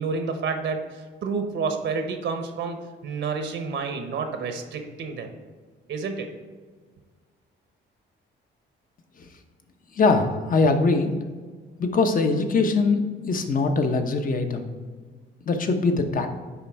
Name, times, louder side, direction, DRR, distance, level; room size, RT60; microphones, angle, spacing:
voice 1, 0.0-5.3 5.9-6.3, right 4 dB, 70° right, 6 dB, 1.0 m, -29 dB
voice 2, 9.9-11.1 11.8-14.7 15.5-16.3, left 3 dB, 45° left, 6 dB, 0.9 m, -22 dB
9.6 x 3.3 x 4.6 m, 1.5 s
cardioid pair, 90°, 20 cm